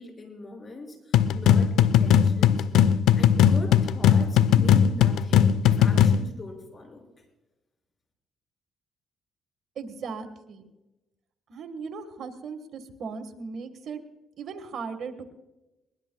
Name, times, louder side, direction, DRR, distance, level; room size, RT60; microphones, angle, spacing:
voice 1, 0.0-2.7 3.2-7.0, left 2 dB, 35° left, 3 dB, 6.0 m, -41 dB
sound 1, 1.1-6.3, left 9 dB, 85° left, 0.5 m, -19 dB
voice 2, 9.7-10.7 11.5-14.0 14.4-15.2, right 5 dB, 65° right, 7 dB, 1.5 m, -37 dB
21.5 x 20.5 x 2.3 m, 1.0 s
cardioid pair, 90°, 0 cm